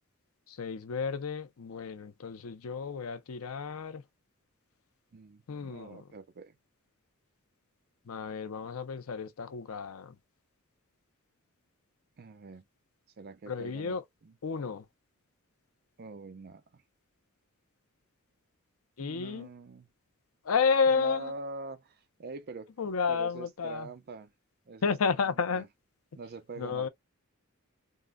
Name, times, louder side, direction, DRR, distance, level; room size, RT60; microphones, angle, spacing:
voice 1, 0.5-4.0 5.5-6.1 8.0-10.2 13.5-14.0 14.4-14.9 19.0-19.5 20.4-21.3 22.8-23.9 24.8-25.6 26.6-26.9, left 5 dB, 70° left, 0.5 m, -31 dB
voice 2, 5.1-6.6 12.2-12.7 13.2-14.4 16.0-16.8 19.0-19.9 20.9-22.7 23.1-24.3 24.7-25.7 26.2-26.9, right 3 dB, 45° right, 0.5 m, -44 dB
3.7 x 2.1 x 2.2 m
head